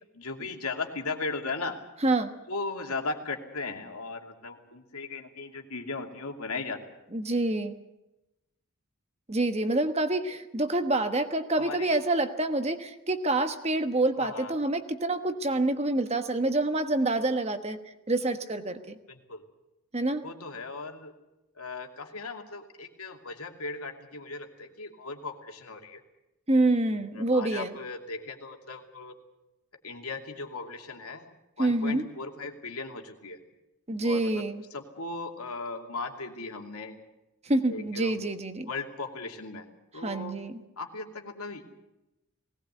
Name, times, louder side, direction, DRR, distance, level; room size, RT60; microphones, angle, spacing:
voice 1, 0.1-1.8 2.5-6.8 11.0-11.1 11.6-12.0 14.2-14.5 19.1-19.4 20.2-21.1 21.5-26.0 27.1-29.2 29.8-33.4 34.0-34.4 34.7-37.0 37.7-38.2 38.7-39.6 39.9-40.4 40.8-41.6, left 3 dB, 85° left, 3 dB, 2.7 m, -37 dB
voice 2, 2.0-2.3 7.1-7.8 9.3-17.8 18.1-19.0 19.9-20.2 26.5-27.7 31.6-32.1 33.9-34.6 37.4-38.7 40.0-40.5, right 2 dB, 30° right, 8 dB, 1.2 m, -27 dB
20.0 x 18.5 x 8.2 m, 0.95 s
head